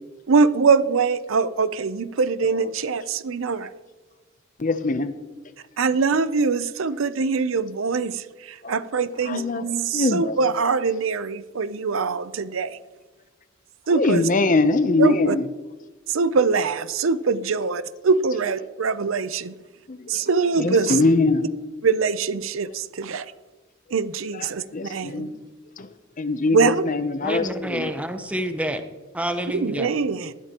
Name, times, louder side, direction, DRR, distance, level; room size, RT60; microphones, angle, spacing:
voice 1, 0.3-3.7 5.8-12.8 13.9-14.3 15.0-15.4 16.1-19.5 20.1-21.0 21.8-23.3 23.9-25.3 26.5-26.8 29.5-30.3, right 4 dB, 75° right, 0.6 m, -23 dB
voice 2, 4.6-5.1 8.6-8.7 9.3-9.6 9.9-10.3 14.0-15.4 19.9-20.1 20.6-21.4 24.7-25.3 25.8-25.9 26.2-26.6 26.9-27.9, left 3 dB, 40° left, 0.7 m, -22 dB
voice 3, 27.2-28.8 29.1-29.9, equal, 5° right, 0.9 m, -28 dB
19.5 x 13.0 x 3.0 m
head